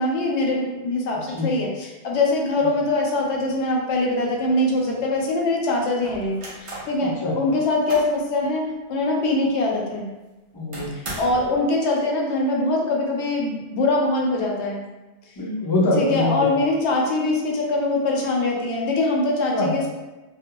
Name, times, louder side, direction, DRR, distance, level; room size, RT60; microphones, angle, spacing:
voice 1, 0.0-10.1 11.2-14.8 16.0-19.9, left 2 dB, 80° left, -1 dB, 0.9 m, -23 dB
voice 2, 1.1-1.5 2.6-2.7 7.0-7.4 10.5-11.0 15.4-16.5 19.5-19.7, left 2 dB, 35° left, -5 dB, 0.3 m, -24 dB
sound 1, 3.9-4.0 4.3-5.1 6.0-7.0 7.5-8.2 8.7-8.8 9.2-9.3 10.7-11.6, right 2 dB, 40° right, 0.5 m, -37 dB
2.3 x 2.0 x 2.8 m, 1.1 s
omnidirectional pair, 1.1 m